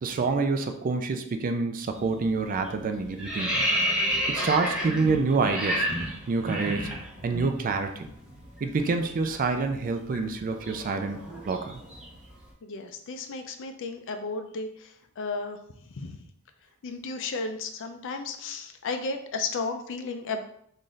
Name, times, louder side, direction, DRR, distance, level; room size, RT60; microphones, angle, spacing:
voice 1, 0.0-3.6 4.3-5.9 6.3-6.9 7.2-8.1 8.6-11.2 11.4-11.8, right 4 dB, 40° right, 7 dB, 0.3 m, -27 dB
sound 1, 1.9-2.2 2.5-7.5 7.8-8.0 8.3-12.3, equal, 5° right, 0.8 m, -30 dB
voice 2, 12.6-16.3 16.8-20.4, left 4 dB, 60° left, 7 dB, 0.4 m, -34 dB
3.1 x 2.6 x 3.8 m, 0.68 s
head